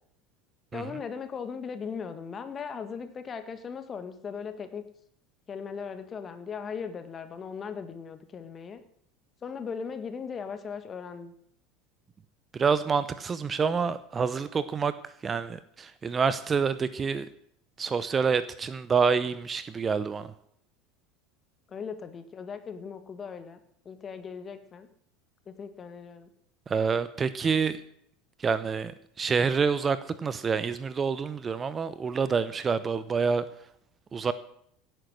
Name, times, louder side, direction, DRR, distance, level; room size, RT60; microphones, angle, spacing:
voice 1, 0.7-4.8 5.5-8.8 9.4-11.3 21.7-23.6 23.9-24.9 25.5-26.3, left 6 dB, 30° left, 9 dB, 1.9 m, -38 dB
voice 2, 12.5-14.9 15.2-17.3 17.8-20.3 26.7-27.8 28.4-28.9 29.2-33.4 34.1-34.3, right 5 dB, 25° right, 15 dB, 0.8 m, -27 dB
17.0 x 9.3 x 6.4 m, 0.70 s
figure-of-eight pair, 75°, 0 cm